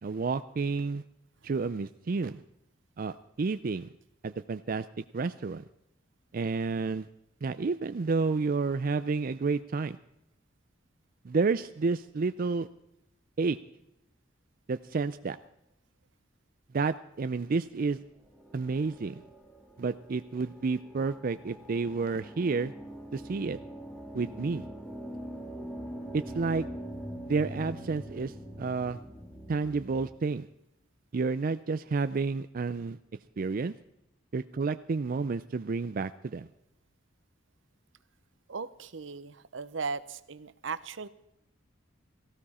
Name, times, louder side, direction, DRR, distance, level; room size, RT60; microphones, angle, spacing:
voice 1, 0.0-1.0 1.4-2.4 3.0-3.9 4.2-5.6 6.3-7.1 7.4-10.0 11.2-12.7 13.4-13.6 14.7-15.4 16.7-18.0 18.5-19.2 19.8-22.7 23.1-23.6 24.1-24.7 26.1-26.7 27.3-29.0 29.5-30.5 31.1-33.0 33.4-33.7 34.3-36.5, right 4 dB, 50° right, 11 dB, 0.4 m, -30 dB
sound 1, 18.2-30.1, equal, 5° left, 2.6 m, -43 dB
voice 2, 38.5-41.1, right 4 dB, 75° right, 15 dB, 0.8 m, -37 dB
18.0 x 15.5 x 4.2 m, 0.82 s
head